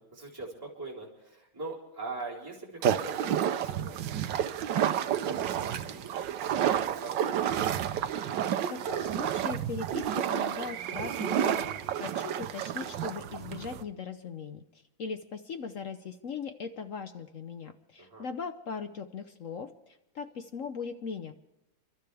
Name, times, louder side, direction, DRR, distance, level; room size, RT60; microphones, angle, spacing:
voice 1, 0.0-4.0 4.7-4.9 5.2-7.5 18.0-18.3, right 3 dB, 10° right, -6 dB, 4.0 m, -42 dB
Wading through water, 2.8-13.8, right 9 dB, 65° right, 1.4 m, -30 dB
voice 2, 8.7-21.3, left 5 dB, 60° left, 8 dB, 0.8 m, -39 dB
29.5 x 12.5 x 3.4 m, 0.93 s
omnidirectional pair, 2.2 m